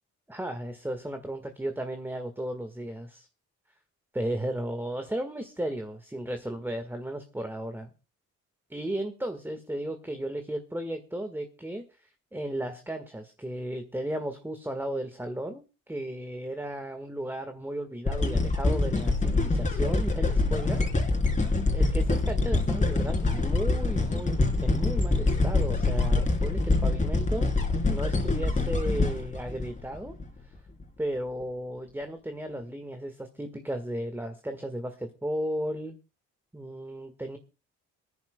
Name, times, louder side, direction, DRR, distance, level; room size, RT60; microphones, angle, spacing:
voice 1, 0.3-3.3 4.1-7.9 8.7-11.8 12.3-20.8 21.7-27.5 27.9-30.1 31.0-36.0 36.5-37.4, right 1 dB, 5° right, 7 dB, 1.7 m, -34 dB
sound 1, 18.1-30.3 30.8-30.9, left 3 dB, 25° left, 3.7 m, -25 dB
26.0 x 10.5 x 2.3 m, 0.31 s
cardioid pair, 90°, 30 cm